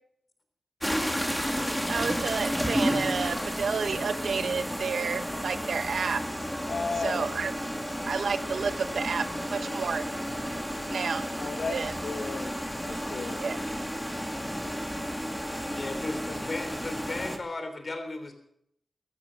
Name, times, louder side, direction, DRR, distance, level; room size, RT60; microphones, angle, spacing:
sound 1, 0.8-17.4, equal, ahead, 2.5 m, -32 dB
voice 1, 1.9-6.3 6.9-7.5 8.1-10.0 10.9-11.4 11.7-12.0 13.4-13.6, right 5 dB, 85° right, 12 dB, 0.9 m, -31 dB
voice 2, 6.7-7.4 11.4-11.7 12.0-12.5 12.8-13.4, left 4 dB, 75° left, 7 dB, 1.4 m, -34 dB
voice 3, 15.8-18.3, left 2 dB, 50° left, 7 dB, 3.4 m, -36 dB
15.0 x 13.5 x 6.4 m, 0.73 s
cardioid pair, 60°, 0 cm